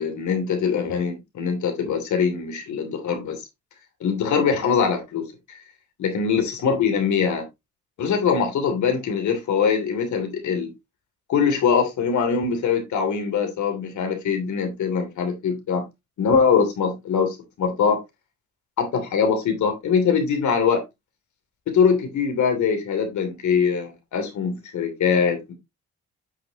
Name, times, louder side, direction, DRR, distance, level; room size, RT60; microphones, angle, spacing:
voice 1, 0.0-3.4 4.0-5.3 6.0-7.4 8.0-10.7 11.3-15.8 16.2-18.0 18.8-20.8 21.7-25.5, left 6 dB, 70° left, 2.9 m, -22 dB
8.6 x 6.3 x 2.9 m
cardioid pair, 90°, 30 cm